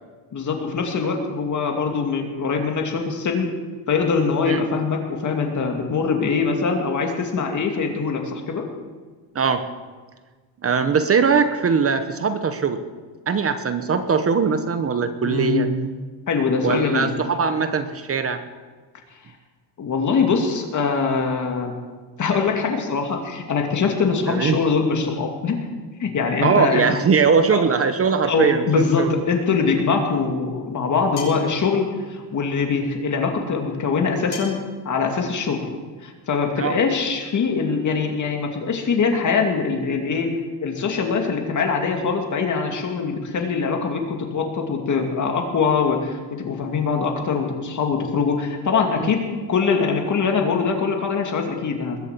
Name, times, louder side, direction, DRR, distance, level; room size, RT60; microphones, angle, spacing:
voice 1, 0.3-3.5 3.9-8.7 15.2-15.7 16.3-17.1 19.8-21.7 22.2-25.6 26.0-26.9 27.5-27.6 28.2-34.6 34.8-35.6 36.0-40.3 40.6-49.2 49.5-52.0, left 5 dB, 40° left, 3 dB, 2.5 m, -23 dB
voice 2, 10.6-12.8 13.3-15.7 16.6-18.4 24.3-24.6 26.4-29.1 36.6-36.8 49.0-49.1, right 5 dB, 30° right, 10 dB, 1.0 m, -21 dB
Rubberband hitting can, 31.2-31.5 34.3-34.7, left 5 dB, 60° left, 6.3 m, -34 dB
21.0 x 8.1 x 8.3 m, 1.4 s
cardioid pair, 155°, 47 cm